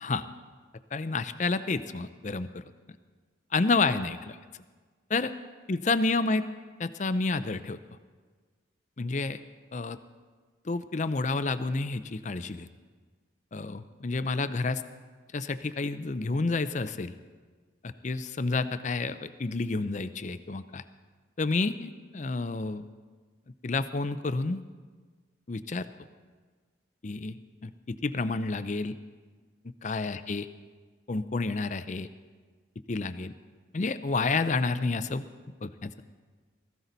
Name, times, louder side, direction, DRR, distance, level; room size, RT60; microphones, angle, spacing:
voice 1, 0.9-2.6 3.5-4.4 5.1-5.3 5.7-6.4 6.8-7.8 9.0-9.4 9.7-10.0 10.7-12.7 13.5-14.8 15.3-17.1 17.8-20.8 21.4-22.8 23.6-24.6 25.5-25.9 27.0-29.0 29.8-30.5 31.1-32.1 32.9-33.3 33.7-35.2 35.6-36.0, left 3 dB, 40° left, 12 dB, 0.5 m, -29 dB
17.0 x 15.0 x 4.0 m, 1.5 s
head